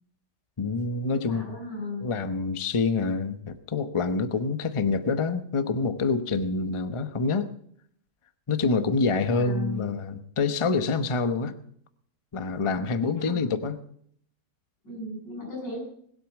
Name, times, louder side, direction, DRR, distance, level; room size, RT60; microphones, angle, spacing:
voice 1, 0.6-1.6 2.0-7.5 8.5-11.5 12.3-13.8, left 4 dB, 25° left, 11 dB, 0.7 m, -26 dB
voice 2, 1.1-2.1 9.1-9.9 13.1-13.6 14.8-15.8, left 2 dB, 85° left, -3 dB, 8.7 m, -37 dB
20.5 x 8.4 x 7.2 m, 0.65 s
omnidirectional pair, 1.9 m